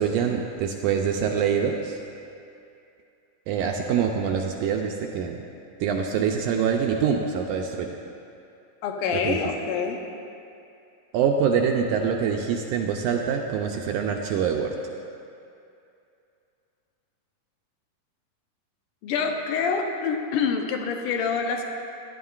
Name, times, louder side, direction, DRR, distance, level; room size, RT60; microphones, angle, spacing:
voice 1, 0.0-2.0 3.5-5.4 5.8-7.9 9.1-9.4 11.1-14.7, right 7 dB, 80° right, 2 dB, 1.8 m, -25 dB
voice 2, 8.8-10.0 19.0-21.6, left 5 dB, 80° left, 3 dB, 2.1 m, -26 dB
15.0 x 11.0 x 2.4 m, 2.6 s
omnidirectional pair, 3.9 m